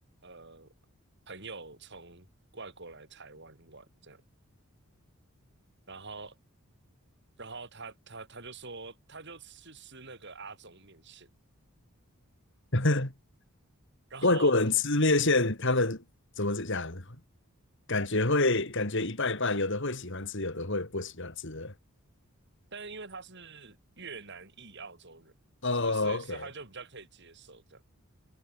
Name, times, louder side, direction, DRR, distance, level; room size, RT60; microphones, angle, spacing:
voice 1, 0.2-0.7 1.3-2.3 2.5-4.2 5.9-6.4 7.4-11.3 14.1-14.6 22.7-25.3 25.8-27.8, right 4 dB, 50° right, 5.3 m, -45 dB
voice 2, 12.7-13.1 14.2-16.0 16.4-17.2 17.9-21.7 25.6-26.5, left 2 dB, 55° left, 3.2 m, -27 dB
head